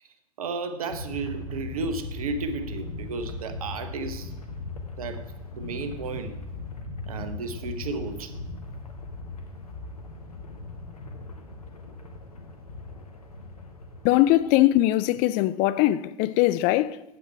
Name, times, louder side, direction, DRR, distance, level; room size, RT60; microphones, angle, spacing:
voice 1, 0.4-4.3 5.0-5.2 5.5-6.4 7.1-8.4, right 4 dB, 75° right, 1.0 m, -33 dB
sound 1, 0.9-14.9, left 3 dB, 85° left, 1.1 m, -38 dB
voice 2, 14.0-17.0, left 15 dB, 45° left, 0.4 m, -21 dB
8.3 x 8.1 x 4.6 m
figure-of-eight pair, 80°, 19 cm